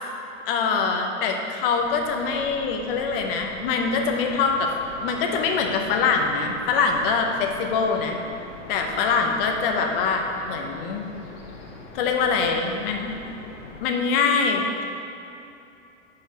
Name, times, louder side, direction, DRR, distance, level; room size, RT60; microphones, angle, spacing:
voice 1, 0.5-4.7 5.0-8.2 8.7-11.1 11.9-13.3 13.8-14.8, left 5 dB, 45° left, 3 dB, 0.8 m, -24 dB
sound 1, 1.8-13.8, left 3 dB, 70° left, 1.2 m, -42 dB
5.3 x 4.5 x 5.0 m, 2.8 s
supercardioid pair, 145°, 38 cm